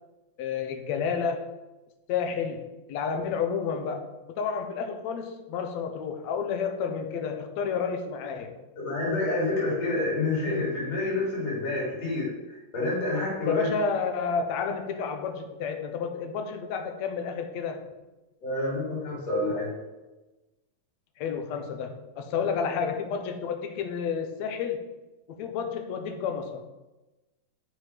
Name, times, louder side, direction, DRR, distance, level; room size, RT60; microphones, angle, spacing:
voice 1, 0.4-1.5 2.1-8.5 13.4-17.9 21.2-24.8 25.3-26.7, left 6 dB, 70° left, 6 dB, 2.0 m, -30 dB
voice 2, 8.8-13.7 18.4-19.7, left 2 dB, 55° left, -5 dB, 4.4 m, -28 dB
9.2 x 6.9 x 5.0 m, 1.1 s
omnidirectional pair, 3.6 m